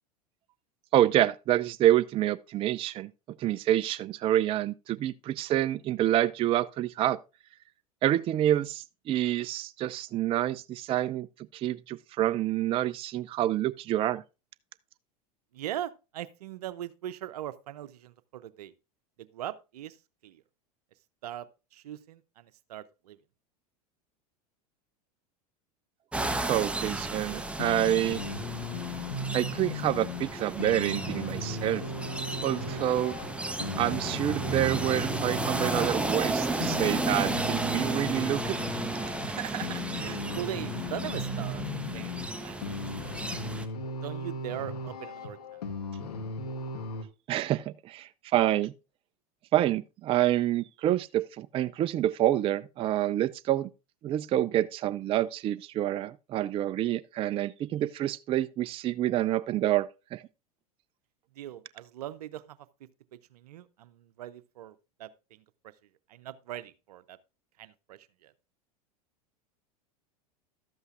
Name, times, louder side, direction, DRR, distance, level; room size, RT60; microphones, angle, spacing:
voice 1, 0.9-3.1 3.4-7.2 8.0-11.3 11.5-14.2 26.4-28.2 29.3-31.8 32.4-33.2 33.8-38.6 47.3-48.7 49.5-53.7 54.0-60.2, right 13 dB, 30° right, 0.3 m, -27 dB
voice 2, 15.5-18.7 19.2-20.4 21.2-23.2 39.3-41.7 41.9-42.7 44.0-45.6 61.3-65.8 66.1-67.2 67.6-68.3, right 12 dB, 75° right, 0.7 m, -41 dB
sound 1, 26.1-43.6, right 2 dB, 5° right, 0.9 m, -33 dB
sound 2, 27.3-47.0, left 3 dB, 80° left, 1.2 m, -37 dB
12.5 x 8.0 x 2.5 m
hypercardioid pair, 90°, 20 cm